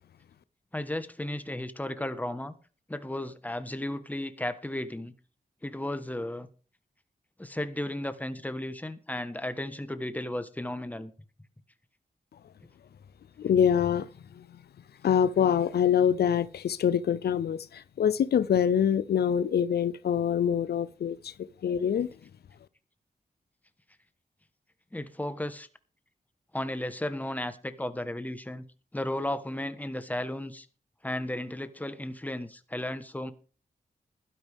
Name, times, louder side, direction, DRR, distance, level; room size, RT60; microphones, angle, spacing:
voice 1, 0.7-2.5 2.9-5.1 5.6-6.5 7.4-11.1 24.9-25.7 26.5-28.6 28.9-30.7 31.0-33.3, left 1 dB, 10° left, 1.3 m, -34 dB
voice 2, 13.4-14.1 15.0-17.6 18.0-21.2 21.6-22.1, left 8 dB, 90° left, 0.6 m, -24 dB
16.0 x 12.0 x 3.6 m
cardioid pair, 70°, 16 cm